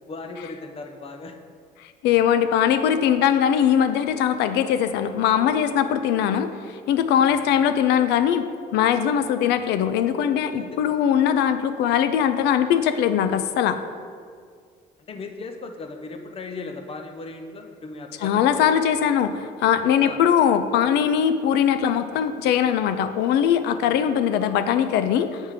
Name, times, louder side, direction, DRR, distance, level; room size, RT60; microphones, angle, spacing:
voice 1, 0.1-1.4 7.1-7.5 10.5-10.9 15.0-18.6 20.0-20.2 23.8-24.1, left 3 dB, 35° left, 5 dB, 0.6 m, -37 dB
voice 2, 2.0-6.5 6.9-8.4 8.7-13.8 18.2-25.4, left 9 dB, 85° left, 10 dB, 0.4 m, -21 dB
7.3 x 3.5 x 4.9 m, 2.1 s
cardioid pair, 110°, 17 cm